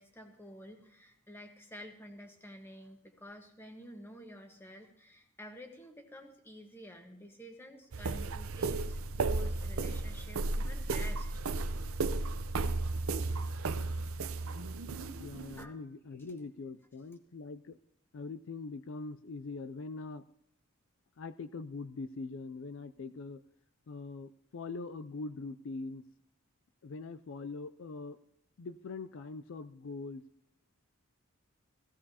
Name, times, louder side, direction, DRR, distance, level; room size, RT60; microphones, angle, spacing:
voice 1, 0.0-11.3 15.6-15.8, equal, 10° left, 4 dB, 1.3 m, -50 dB
sound 1, 7.9-15.6, right 3 dB, 75° right, 0.6 m, -34 dB
voice 2, 15.2-17.8 18.1-20.2 21.2-23.4 23.9-26.0 26.8-28.2 28.6-30.2, left 3 dB, 60° left, 13 dB, 0.4 m, -42 dB
16.0 x 15.5 x 2.8 m, 0.74 s
head